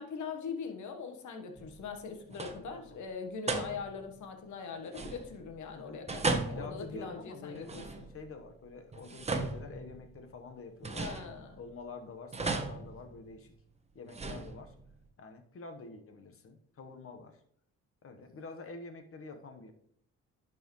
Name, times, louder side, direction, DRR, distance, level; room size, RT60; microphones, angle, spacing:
voice 1, 0.0-8.1 11.0-11.6, left 5 dB, 75° left, 6 dB, 1.4 m, -41 dB
sound 1, 1.6-2.0 2.3-2.8 3.5-4.1 4.9-5.6 6.1-8.3 8.9-10.3 10.8-11.8 12.3-13.6 14.1-15.0, right 3 dB, 20° right, 1.0 m, -37 dB
voice 2, 6.3-7.7 8.1-11.1 11.6-13.5 13.9-14.7 15.2-17.4 18.0-19.7, left 4 dB, 50° left, 6 dB, 1.2 m, -47 dB
11.0 x 4.8 x 3.2 m, 0.67 s
cardioid pair, 90°, 30 cm